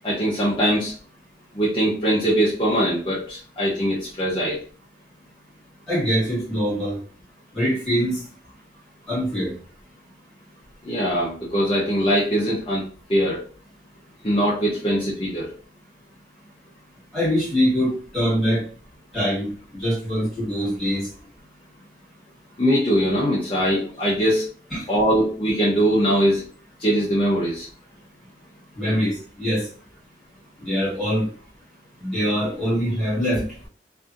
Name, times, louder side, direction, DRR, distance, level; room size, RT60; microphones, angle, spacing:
voice 1, 0.0-0.9 1.5-4.6 10.8-12.8 13.1-13.4 14.2-15.5 22.6-24.5 24.9-26.4 26.8-27.7, equal, 30° left, -7 dB, 0.6 m, -21 dB
voice 2, 5.9-7.0 7.5-8.2 9.1-9.5 17.1-18.6 19.1-21.1 24.7-24.8 28.8-29.7 30.6-31.3 32.0-33.4, equal, ahead, -9 dB, 1.5 m, -23 dB
2.7 x 2.5 x 2.4 m, 0.42 s
head